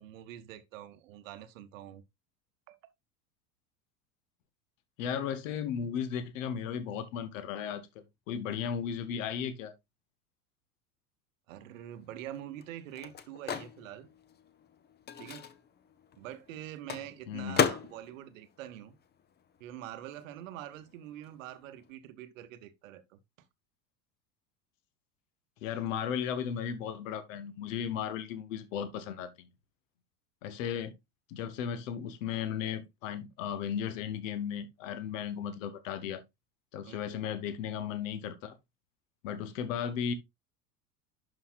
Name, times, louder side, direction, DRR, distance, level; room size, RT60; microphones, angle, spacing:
voice 1, 0.0-2.0 2.7-2.9 11.5-14.1 15.2-15.5 16.2-19.0 19.6-23.2 36.8-37.0, right 12 dB, 55° right, 1.0 m, -45 dB
voice 2, 5.0-9.7 17.3-17.6 25.6-29.5 30.4-30.9 31.3-36.2 36.7-38.5 39.2-40.1, left 8 dB, 55° left, 1.1 m, -35 dB
Microwave oven, 11.6-19.8 20.0-21.9, left 7 dB, 20° left, 0.7 m, -37 dB
11.0 x 5.0 x 2.4 m
figure-of-eight pair, 75°, 47 cm